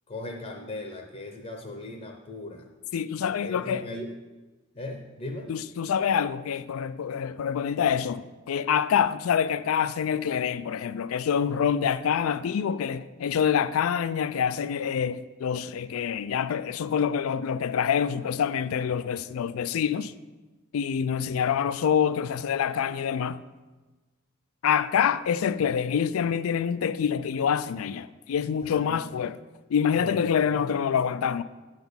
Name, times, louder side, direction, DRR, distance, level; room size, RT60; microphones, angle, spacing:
voice 1, 0.1-2.7 3.4-4.1 4.7-5.5 28.6-29.1 30.0-30.6, left 2 dB, 30° left, 0.6 m, -38 dB
voice 2, 2.9-3.9 5.5-20.1 20.7-23.4 24.6-29.4 29.7-31.4, left 7 dB, 90° left, 0.4 m, -26 dB
8.7 x 4.0 x 7.0 m
head